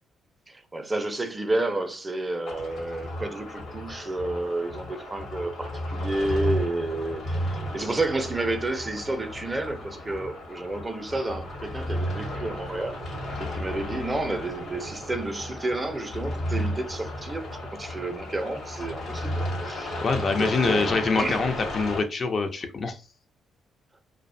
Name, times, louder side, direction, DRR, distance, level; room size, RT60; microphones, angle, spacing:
voice 1, 0.5-19.3 19.6-20.0 20.4-21.5, right 2 dB, 20° right, 0.4 m, -31 dB
sound 1, 2.5-22.0, equal, 60° left, 0.9 m, -33 dB
voice 2, 20.0-23.0, left 4 dB, 45° left, 0.4 m, -25 dB
2.5 x 2.0 x 2.5 m
cardioid pair, 90°, 0 cm